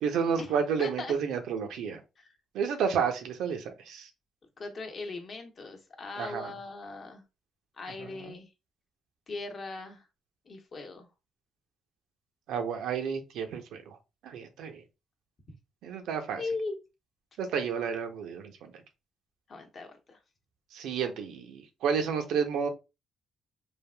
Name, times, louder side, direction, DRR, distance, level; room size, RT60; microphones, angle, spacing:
voice 1, 0.0-2.0 2.5-4.1 6.2-6.5 8.0-8.3 12.5-14.0 14.2-14.8 15.8-16.4 17.4-18.7 20.7-22.7, right 6 dB, 85° right, 0.5 m, -31 dB
voice 2, 0.8-1.1 2.2-2.3 4.6-7.2 7.8-8.5 9.3-10.0 10.5-11.1 16.4-16.8 19.5-20.2, left 3 dB, 45° left, 0.8 m, -38 dB
3.3 x 2.4 x 2.2 m
cardioid pair, 90°, 0 cm